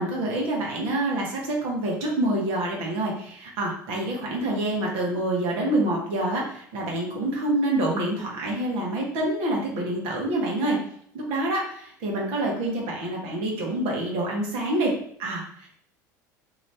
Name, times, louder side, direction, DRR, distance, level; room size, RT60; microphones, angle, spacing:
voice 1, 0.0-10.8 11.1-14.9 15.2-15.7, right 1 dB, 65° right, -2 dB, 1.2 m, -27 dB
2.9 x 2.7 x 3.3 m, 0.63 s
hypercardioid pair, 80°, 10 cm